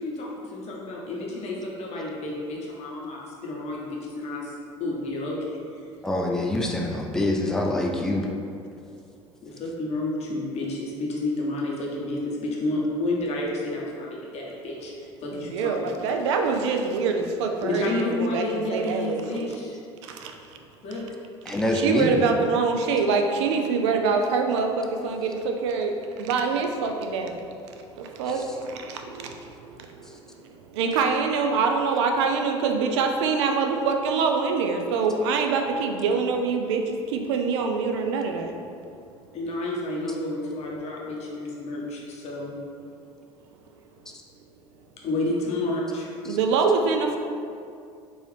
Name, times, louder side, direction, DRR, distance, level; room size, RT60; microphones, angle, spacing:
voice 1, 0.0-4.4 4.8-5.6 9.4-14.9 15.2-16.0 17.6-19.8 20.8-21.0 39.3-42.5 45.0-46.2, left 2 dB, 45° left, -3 dB, 0.7 m, -30 dB
voice 2, 6.0-8.3 21.5-22.2 28.3-28.5 30.0-30.2 44.1-44.2 46.2-46.4, left 1 dB, 5° left, 0 dB, 0.4 m, -26 dB
voice 3, 15.3-19.5 20.0-20.3 21.8-27.5 27.9-38.6 46.2-47.2, right 4 dB, 70° right, 4 dB, 0.4 m, -25 dB
3.8 x 2.5 x 3.1 m, 2.4 s
hypercardioid pair, 65°, 15 cm